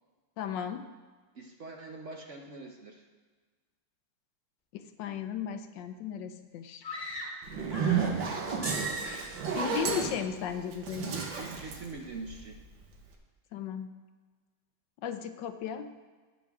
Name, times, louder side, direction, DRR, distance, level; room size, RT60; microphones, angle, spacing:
voice 1, 0.4-0.8 4.7-6.8 9.0-11.2 13.5-13.9 15.0-15.9, left 8 dB, 75° left, 9 dB, 1.2 m, -36 dB
voice 2, 1.3-3.1 11.4-12.6, right 3 dB, 55° right, 2 dB, 0.9 m, -43 dB
sound 1, 6.8-8.2 8.6-9.4, right 1 dB, 15° left, 1.2 m, -39 dB
Zipper (clothing), 7.4-12.7, right 6 dB, 75° right, 1.9 m, -32 dB
sound 2, 8.6-10.2, right 3 dB, 35° right, 1.5 m, -40 dB
18.5 x 6.2 x 3.5 m, 1.4 s
omnidirectional pair, 2.1 m